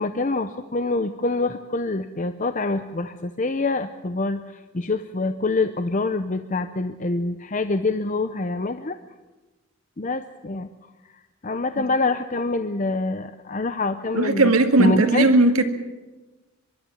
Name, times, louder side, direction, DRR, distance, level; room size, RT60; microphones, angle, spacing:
voice 1, 0.0-9.0 10.0-10.7 11.4-14.5 14.8-15.3, left 3 dB, 35° left, 9 dB, 0.6 m, -25 dB
voice 2, 14.1-15.6, right 2 dB, 85° right, 6 dB, 1.9 m, -17 dB
23.5 x 12.0 x 9.7 m, 1.2 s
head